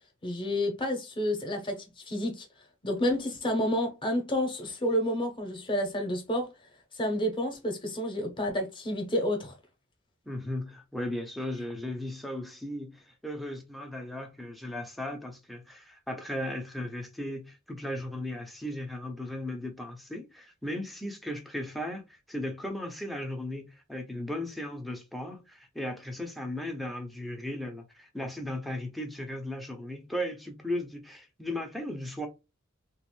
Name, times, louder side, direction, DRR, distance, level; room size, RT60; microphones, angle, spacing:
voice 1, 0.2-2.5 2.8-6.5 6.9-9.5, left 1 dB, 25° left, 0.9 m, -30 dB
voice 2, 10.3-32.3, left 1 dB, ahead, 0.6 m, -36 dB
3.1 x 2.5 x 3.0 m
head